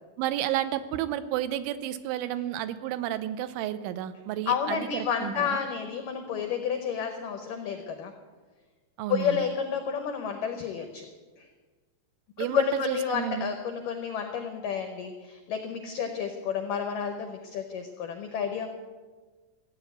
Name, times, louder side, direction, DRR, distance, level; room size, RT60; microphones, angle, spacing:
voice 1, 0.2-5.6 9.0-9.5 12.4-13.5, right 12 dB, 90° right, 12 dB, 3.2 m, -31 dB
voice 2, 4.5-8.1 9.1-11.1 11.4-11.5 12.4-18.7, left 7 dB, 90° left, 5 dB, 1.9 m, -30 dB
15.0 x 9.1 x 8.2 m, 1.4 s
omnidirectional pair, 5.3 m